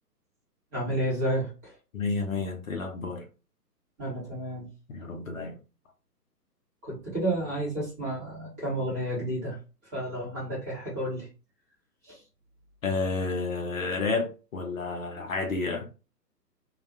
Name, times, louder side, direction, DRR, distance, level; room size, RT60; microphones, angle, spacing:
voice 1, 0.7-1.7 4.0-4.7 6.8-9.6 9.9-11.3 12.1-12.2, right 1 dB, 10° right, 0.7 m, -31 dB
voice 2, 1.9-3.3 4.9-5.6 12.8-15.8, left 3 dB, 55° left, 0.7 m, -30 dB
2.4 x 2.1 x 2.8 m
figure-of-eight pair, 130°, 49 cm